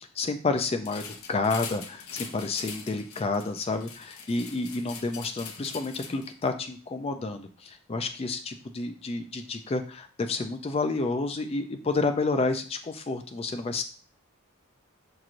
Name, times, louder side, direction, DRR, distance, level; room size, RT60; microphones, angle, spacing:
voice 1, 0.2-13.8, left 3 dB, 25° left, 7 dB, 0.3 m, -30 dB
sound 1, 0.8-6.5, left 6 dB, 75° left, 0.6 m, -43 dB
6.0 x 2.9 x 2.5 m, 0.41 s
head